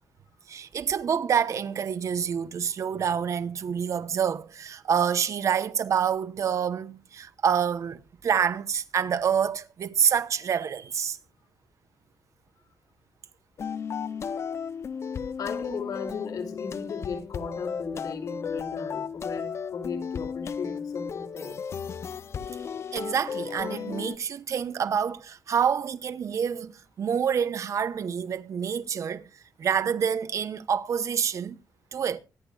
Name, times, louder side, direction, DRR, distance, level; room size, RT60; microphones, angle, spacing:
voice 1, 0.5-11.2 22.9-29.2 29.6-31.6 31.9-32.2, right 7 dB, 55° right, 0.9 m, -27 dB
sound 1, 13.6-24.2, left 6 dB, 45° left, 0.5 m, -34 dB
voice 2, 15.4-21.7, left 5 dB, 75° left, 2.6 m, -36 dB
24.5 x 10.5 x 2.3 m
wide cardioid pair, 135°, 6 cm